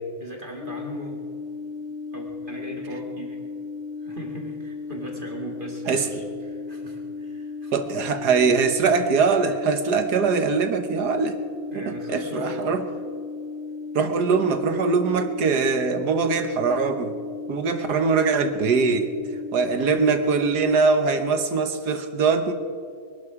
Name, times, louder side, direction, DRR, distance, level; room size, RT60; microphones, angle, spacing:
voice 1, 0.2-1.2 2.1-3.4 4.0-7.9 11.7-12.8 19.7-19.9, right 1 dB, 30° right, 0 dB, 2.2 m, -38 dB
sound 1, 0.6-20.6, left 4 dB, 60° left, 0.7 m, -35 dB
voice 2, 7.7-11.4 12.1-12.8 14.0-17.1 17.5-19.1 19.5-22.5, right 5 dB, 75° right, 8 dB, 1.8 m, -22 dB
23.5 x 11.5 x 4.9 m, 2.2 s
omnidirectional pair, 1.8 m